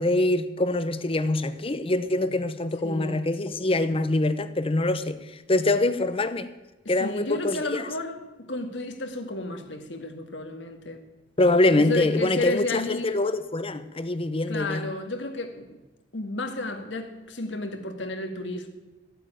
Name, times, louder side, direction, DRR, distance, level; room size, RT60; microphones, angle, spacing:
voice 1, 0.0-5.2 5.5-6.5 6.9-7.8 11.4-14.8, left 2 dB, 30° left, 0.8 m, -24 dB
voice 2, 2.8-3.2 6.9-11.0 11.8-13.1 14.5-15.8 16.1-18.7, left 2 dB, 75° left, 1.9 m, -32 dB
14.5 x 9.0 x 9.0 m
head